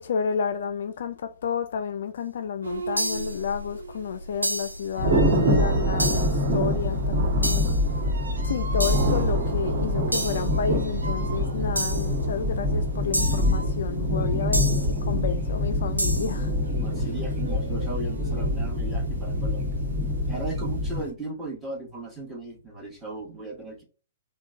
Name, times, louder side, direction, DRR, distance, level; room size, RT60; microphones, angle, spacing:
voice 1, 0.0-7.7 8.4-14.7 15.0-16.5 17.0-17.1, left 6 dB, 60° left, 0.3 m, -31 dB
sound 1, 2.6-21.1, right 2 dB, 75° right, 1.0 m, -41 dB
sound 2, 3.0-3.4 4.4-4.8 6.0-6.4 7.4-7.8 8.8-9.2 10.1-10.5 11.8-12.1 13.1-13.5 14.5-14.9 16.0-16.4, right 1 dB, 90° right, 0.6 m, -29 dB
Thunder, 5.0-21.0, left 1 dB, 40° right, 1.2 m, -25 dB
voice 2, 16.8-19.8 20.3-23.8, right 2 dB, 5° right, 1.3 m, -36 dB
3.7 x 2.2 x 3.5 m
figure-of-eight pair, 115°, 0 cm